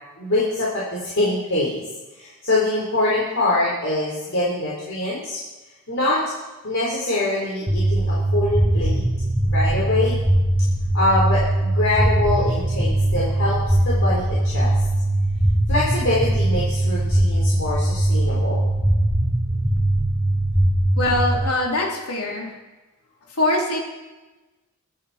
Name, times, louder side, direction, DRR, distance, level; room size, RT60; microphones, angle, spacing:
voice 1, 0.2-1.8 2.1-5.4 5.9-6.2 6.6-9.0 9.4-10.2 10.9-13.6 13.8-14.8 15.7-18.7, left 2 dB, 60° left, -6 dB, 4.0 m, -24 dB
sound 1, 7.7-21.4, right 1 dB, 10° right, 1.6 m, -20 dB
voice 2, 21.0-22.5 23.3-23.8, left 1 dB, 85° left, -1 dB, 3.1 m, -23 dB
23.5 x 9.8 x 4.3 m, 1.1 s
head